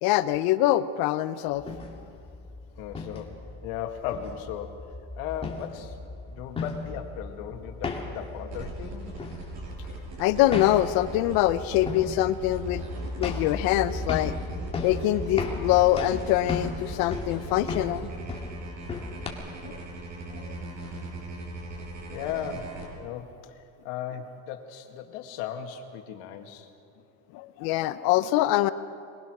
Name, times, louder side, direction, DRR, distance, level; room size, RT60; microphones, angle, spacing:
voice 1, 0.0-1.7 10.2-12.9 13.2-14.3 14.8-18.1 19.6-19.8 20.3-20.5 27.3-28.7, left 14 dB, 65° left, 14 dB, 0.9 m, -24 dB
sound 1, 1.5-19.3, left 3 dB, 15° left, 2.1 m, -36 dB
voice 2, 2.8-4.9 5.2-6.0 6.3-9.1 22.1-26.7, left 9 dB, 85° left, 4 dB, 2.0 m, -37 dB
sound 2, 8.5-22.9, right 2 dB, 45° right, 5.3 m, -40 dB
22.0 x 21.0 x 6.2 m, 2.5 s
cardioid pair, 160°, 39 cm